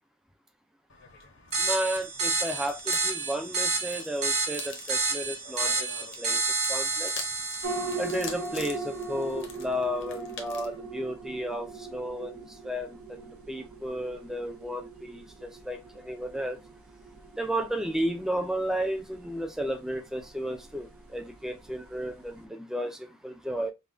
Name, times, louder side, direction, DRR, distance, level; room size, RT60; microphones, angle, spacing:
sound 1, 0.9-10.8, left 6 dB, 60° left, 0.8 m, -46 dB
sound 2, 1.5-8.7, right 3 dB, 30° right, 0.9 m, -30 dB
voice 1, 1.6-5.9 6.2-6.4 6.7-7.1 8.0-16.6 17.4-23.7, equal, ahead, 0.4 m, -33 dB
sound 3, 7.6-22.4, right 3 dB, 90° right, 0.7 m, -41 dB
5.4 x 2.2 x 2.6 m
head